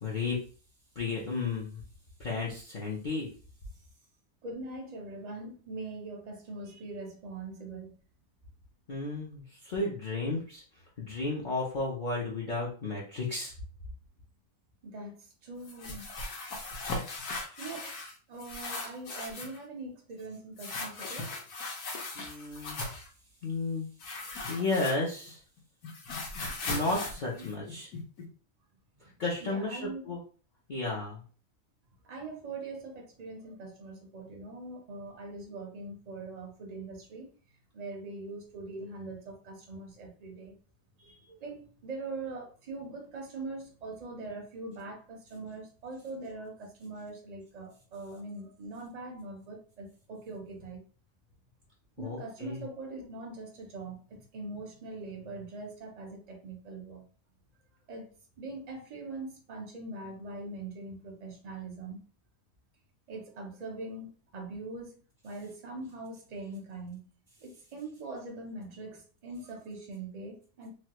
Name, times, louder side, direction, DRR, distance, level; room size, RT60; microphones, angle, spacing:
voice 1, 0.0-0.4 1.0-1.8 2.2-3.3 8.9-10.6 11.0-13.5 22.1-22.8 23.4-25.4 26.7-27.9 29.2-30.2 30.7-31.2 52.0-52.6, left 3 dB, 55° left, 0.5 m, -33 dB
voice 2, 4.4-7.9 14.8-16.0 17.6-18.0 18.3-21.4 29.0-30.1 32.0-37.3 37.7-40.6 41.0-50.8 52.0-57.0 57.9-62.0 63.1-67.0 67.4-70.7, right 3 dB, 50° right, 0.5 m, -42 dB
sound 1, 15.6-18.1 18.4-19.6 20.6-23.1 24.0-25.3 25.6-28.2, left 2 dB, 75° left, 1.3 m, -38 dB
3.1 x 2.3 x 2.8 m
omnidirectional pair, 1.6 m